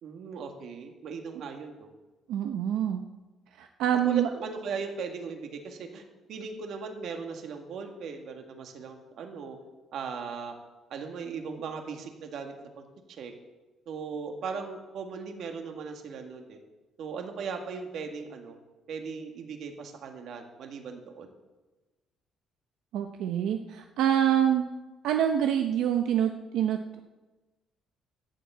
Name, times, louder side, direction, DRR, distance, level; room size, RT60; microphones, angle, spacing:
voice 1, 0.0-1.9 4.0-6.0 6.3-9.6 9.9-10.5 10.9-12.8 13.2-13.3 13.9-16.6 17.0-18.6 18.9-21.3, right 5 dB, 55° right, 4 dB, 1.9 m, -38 dB
voice 2, 2.3-3.0 3.6-4.3 22.9-24.7 25.0-27.0, right 10 dB, 80° right, 5 dB, 0.8 m, -26 dB
13.0 x 7.5 x 8.4 m, 1.2 s
cardioid pair, 160°, 0 cm